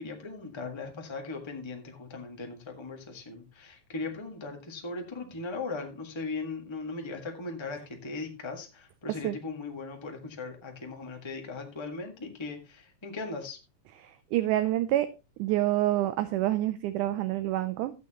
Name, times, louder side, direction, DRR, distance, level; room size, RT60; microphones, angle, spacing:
voice 1, 0.0-13.6, left 3 dB, 35° left, 3 dB, 0.4 m, -38 dB
voice 2, 14.0-15.1 15.4-17.9, right 14 dB, 75° right, 11 dB, 2.0 m, -27 dB
13.5 x 8.9 x 3.0 m, 0.27 s
omnidirectional pair, 3.8 m